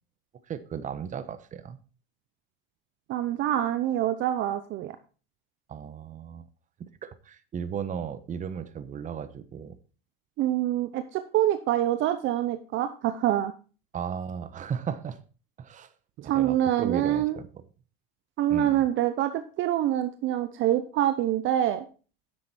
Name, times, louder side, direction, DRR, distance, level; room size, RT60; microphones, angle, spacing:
voice 1, 0.5-1.8 5.7-6.5 6.8-9.8 13.9-15.2 15.6-15.9 16.2-17.5 18.5-18.8, right 7 dB, 25° right, 12 dB, 1.1 m, -35 dB
voice 2, 3.1-5.0 10.4-13.5 16.2-17.4 18.4-21.9, right 12 dB, 45° right, 10 dB, 0.8 m, -26 dB
9.9 x 7.6 x 4.3 m, 0.36 s
supercardioid pair, 115°, 29 cm